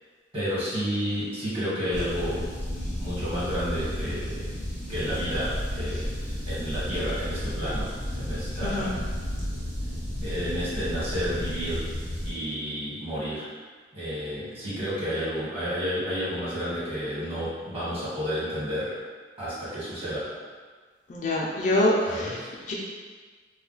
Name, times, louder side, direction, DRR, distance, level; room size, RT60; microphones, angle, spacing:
voice 1, 0.3-2.5 3.0-4.5 4.9-6.1 6.5-9.1 10.2-11.9 12.2-13.4 13.9-18.9 19.4-20.3 22.0-22.5, equal, 35° right, -10 dB, 1.3 m, -31 dB
sound 1, 1.9-12.3, equal, 80° right, 1.1 m, -32 dB
voice 2, 21.1-22.3 22.7-22.8, left 1 dB, 45° left, -4 dB, 0.4 m, -25 dB
2.3 x 2.2 x 3.8 m, 1.5 s
head